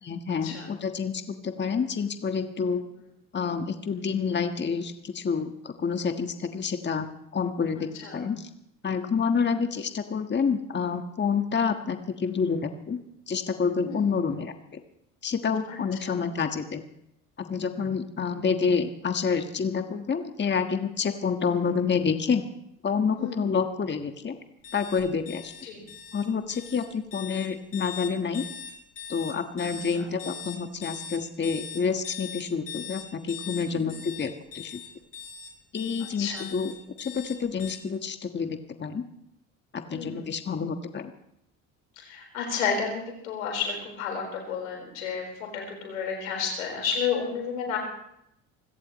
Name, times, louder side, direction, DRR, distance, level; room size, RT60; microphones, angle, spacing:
voice 1, 0.0-2.8 3.3-7.1 7.3-8.5 8.8-13.0 13.3-14.8 15.2-16.8 17.4-22.4 22.8-24.4 24.7-25.5 26.1-28.4 29.1-34.8 35.7-39.0 39.7-41.1, left 5 dB, 25° left, 6 dB, 1.5 m, -28 dB
sound 1, 24.6-37.8, left 8 dB, 55° left, 5.5 m, -41 dB
voice 2, 39.9-40.2 42.0-47.8, left 6 dB, 85° left, 1 dB, 4.6 m, -31 dB
26.5 x 17.0 x 3.1 m, 0.77 s
hypercardioid pair, 65°, 40 cm